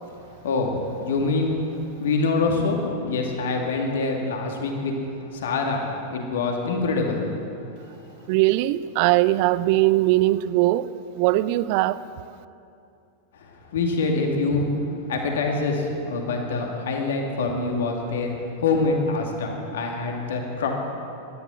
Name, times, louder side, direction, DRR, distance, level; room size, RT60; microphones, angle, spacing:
voice 1, 0.4-1.5 2.0-5.0 5.3-7.3 13.3-14.7 15.1-20.7, left 3 dB, 60° left, 1 dB, 2.2 m, -25 dB
voice 2, 8.3-10.9 11.2-12.0, right 17 dB, 45° right, 17 dB, 0.4 m, -20 dB
16.0 x 12.0 x 6.4 m, 2.6 s
figure-of-eight pair, 90°, 0 cm